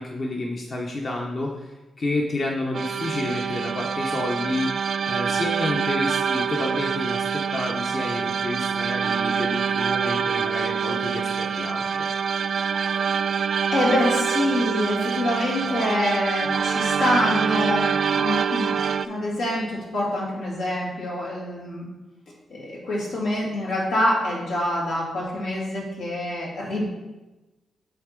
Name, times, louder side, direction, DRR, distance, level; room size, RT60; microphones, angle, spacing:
voice 1, 0.0-12.1, left 2 dB, 50° left, -1 dB, 1.0 m, -30 dB
sound 1, 2.7-19.1, right 6 dB, 65° right, 0.3 m, -25 dB
voice 2, 13.7-18.8 19.0-21.8 22.5-26.8, left 1 dB, 90° left, -6 dB, 2.5 m, -26 dB
8.2 x 3.7 x 5.2 m, 1.1 s
cardioid pair, 60°, 0 cm